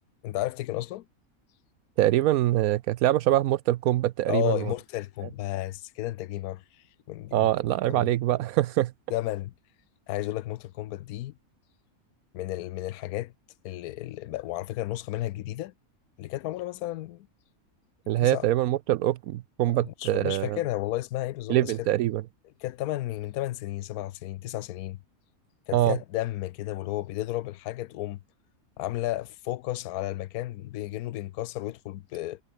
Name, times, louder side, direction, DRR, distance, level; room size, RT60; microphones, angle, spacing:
voice 1, 0.2-1.0 4.3-6.6 7.1-7.5 7.9-8.1 9.1-9.5 10.1-11.3 12.3-13.3 13.6-15.7 16.2-17.3 18.2-18.5 19.8-21.9 22.6-25.0 25.7-28.2 28.8-32.4, left 15 dB, 90° left, 1.1 m, -33 dB
voice 2, 2.0-4.7 7.3-8.9 18.1-20.6 21.5-22.2 25.7-26.0, right 14 dB, 80° right, 1.0 m, -24 dB
omnidirectional pair, 1.5 m